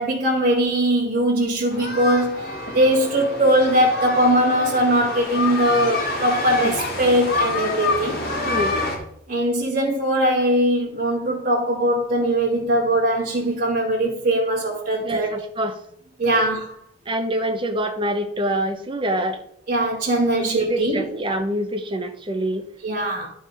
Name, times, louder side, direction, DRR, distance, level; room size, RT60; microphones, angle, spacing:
voice 1, 0.0-8.2 9.3-15.3 16.2-16.8 19.7-21.0 22.8-23.3, right 1 dB, 45° right, -7 dB, 2.2 m, -21 dB
sound 1, 1.7-9.0, left 3 dB, 50° left, 2.1 m, -27 dB
voice 2, 8.5-8.8 15.0-15.8 16.3-16.4 17.1-19.4 20.4-22.7, right 1 dB, 25° right, 6 dB, 0.9 m, -25 dB
11.5 x 4.6 x 5.0 m, 0.71 s
head